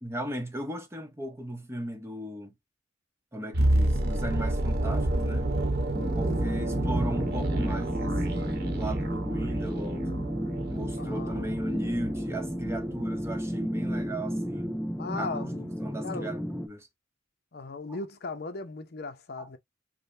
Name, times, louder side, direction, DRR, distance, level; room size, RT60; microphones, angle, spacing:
voice 1, 0.0-2.5 3.3-5.5 6.1-10.1 10.7-14.8 15.2-15.5 15.8-16.9 17.9-18.0 19.4-19.6, right 1 dB, 15° right, 0.8 m, -37 dB
sound 1, 3.5-13.5 13.8-14.0, right 1 dB, 60° right, 1.0 m, -29 dB
sound 2, 5.9-16.7, equal, 5° left, 0.3 m, -33 dB
voice 2, 6.8-7.2 11.0-11.5 15.0-15.7 16.0-16.4 17.5-19.6, left 3 dB, 55° left, 0.7 m, -38 dB
5.1 x 2.2 x 2.6 m
head